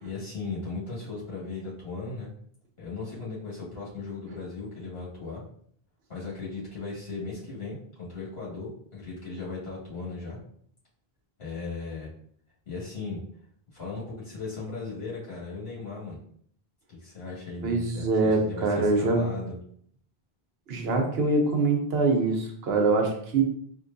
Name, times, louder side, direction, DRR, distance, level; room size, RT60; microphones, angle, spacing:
voice 1, 0.0-2.3 2.8-5.4 6.1-10.4 11.4-12.1 12.7-13.2 13.7-16.2 16.9-19.5, left 3 dB, 75° left, -7 dB, 2.1 m, -37 dB
voice 2, 17.6-19.3 20.7-23.4, right 3 dB, 75° right, 2 dB, 1.0 m, -24 dB
4.5 x 3.0 x 2.6 m, 0.63 s
omnidirectional pair, 1.0 m